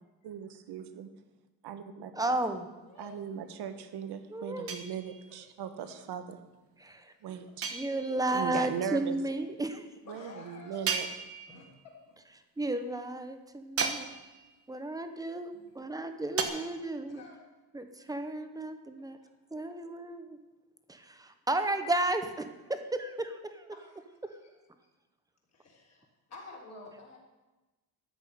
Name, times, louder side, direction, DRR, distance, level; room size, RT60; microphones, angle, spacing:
voice 1, 0.2-1.1 1.6-2.4 3.0-6.4 7.2-7.7 8.3-9.2 10.1-11.1, right 8 dB, 85° right, 10 dB, 1.3 m, -39 dB
voice 2, 2.1-2.7 4.3-4.7 6.8-7.1 7.7-9.9 12.6-14.1 14.7-17.2 17.7-19.2 19.5-20.4 20.9-23.7, right 2 dB, 10° right, 8 dB, 0.8 m, -33 dB
voice 3, 3.7-4.6 5.8-5.9 10.1-11.0 11.5-11.7 12.1-12.2 15.5-15.8 17.1-17.4 17.7-17.8 19.2-19.6 23.7-24.5 25.5-27.2, left 3 dB, 40° left, -2 dB, 3.7 m, -51 dB
sound 1, 4.7-5.4 7.6-8.4 10.9-11.8 13.8-14.6 16.4-16.5, right 6 dB, 35° right, 1.2 m, -35 dB
13.5 x 6.3 x 9.9 m, 1.1 s
cardioid pair, 180°, 38 cm